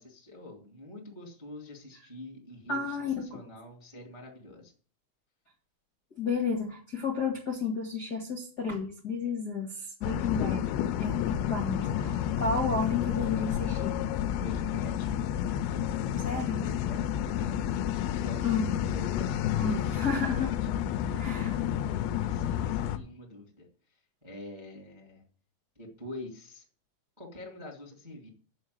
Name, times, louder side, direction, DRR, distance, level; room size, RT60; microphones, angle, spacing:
voice 1, 0.0-4.7 14.3-15.1 15.7-18.4 18.9-20.5 21.1-23.7 24.2-25.2 25.7-26.6 27.2-28.3, left 1 dB, 15° right, -1 dB, 1.0 m, -46 dB
voice 2, 2.7-3.4 6.2-10.7 11.0-14.0 16.2-16.6 18.4-18.7 19.5-20.5 21.1-21.5, left 4 dB, 75° left, 0 dB, 0.9 m, -32 dB
sound 1, 10.0-23.0, left 10 dB, 90° left, 2.5 m, -30 dB
7.7 x 7.2 x 7.9 m, 0.43 s
omnidirectional pair, 5.8 m